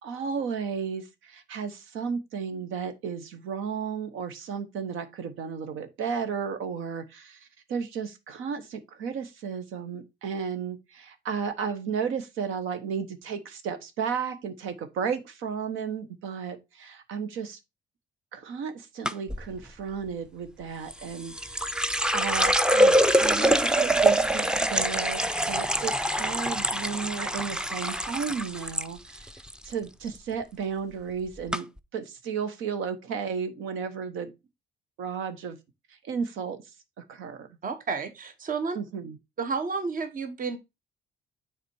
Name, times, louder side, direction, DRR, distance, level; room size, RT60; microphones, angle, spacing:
voice 1, 0.0-17.6 18.3-25.2 25.5-29.3 29.6-31.7 31.9-34.3 35.0-35.6 36.0-36.6 37.1-37.6 38.7-39.2, right 6 dB, 90° right, 1.1 m, -33 dB
sound 1, 19.1-19.4 20.9-28.9 29.2-29.7 30.1-30.4 31.1-31.2 31.5-31.6, right 1 dB, 5° right, 0.5 m, -24 dB
voice 2, 37.6-38.8 39.4-40.6, right 4 dB, 45° right, 1.1 m, -31 dB
7.0 x 4.2 x 4.6 m
cardioid pair, 90°, 20 cm